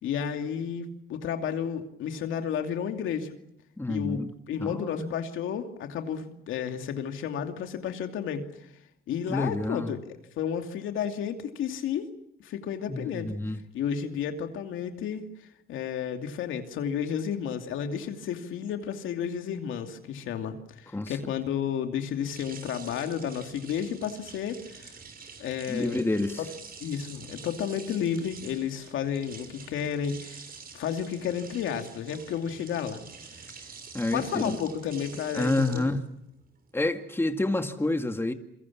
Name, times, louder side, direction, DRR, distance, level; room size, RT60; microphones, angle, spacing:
voice 1, 0.0-3.3 3.9-4.2 4.5-8.5 9.1-10.0 10.4-12.1 12.4-13.4 13.7-15.3 15.7-24.9 25.4-26.1 26.8-30.4 30.7-33.0 33.3-33.5 34.1-35.9, left 8 dB, 80° left, 2.7 m, -32 dB
voice 2, 3.8-4.3 4.6-5.1 9.3-10.0 12.9-13.6 20.9-21.2 25.7-26.4 33.9-34.6 35.3-36.0 36.7-38.3, left 2 dB, 10° left, 2.1 m, -28 dB
sound 1, 22.2-36.7, right 5 dB, 50° right, 6.3 m, -47 dB
28.0 x 23.0 x 7.3 m
cardioid pair, 90°, 20 cm